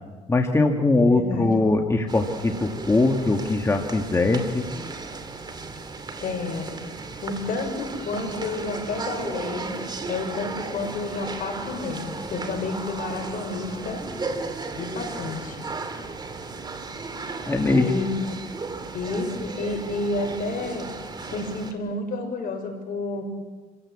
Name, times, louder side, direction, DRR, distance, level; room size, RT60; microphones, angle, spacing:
voice 1, 0.3-4.6 17.4-17.9, left 2 dB, 15° left, 3 dB, 1.8 m, -21 dB
voice 2, 0.9-1.5 6.2-6.7 7.2-9.8 10.0-14.0 14.7-15.6 17.6-18.4 18.9-20.9 21.3-23.4, left 3 dB, 55° left, 3 dB, 6.4 m, -30 dB
sound 1, 2.1-21.7, right 3 dB, 25° right, 2.5 m, -35 dB
27.0 x 16.0 x 8.6 m, 1.3 s
cardioid pair, 110°, 17 cm